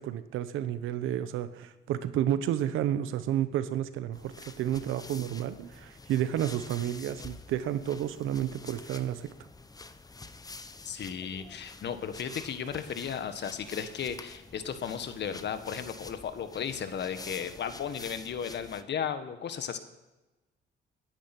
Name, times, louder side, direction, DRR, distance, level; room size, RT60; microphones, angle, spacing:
voice 1, 0.0-9.3, right 11 dB, 90° right, 13 dB, 1.0 m, -31 dB
sound 1, 4.1-18.8, left 3 dB, 20° left, 0.9 m, -48 dB
voice 2, 10.8-19.8, left 7 dB, 60° left, 10 dB, 1.5 m, -35 dB
20.0 x 10.0 x 6.1 m, 1.1 s
cardioid pair, 90°, 20 cm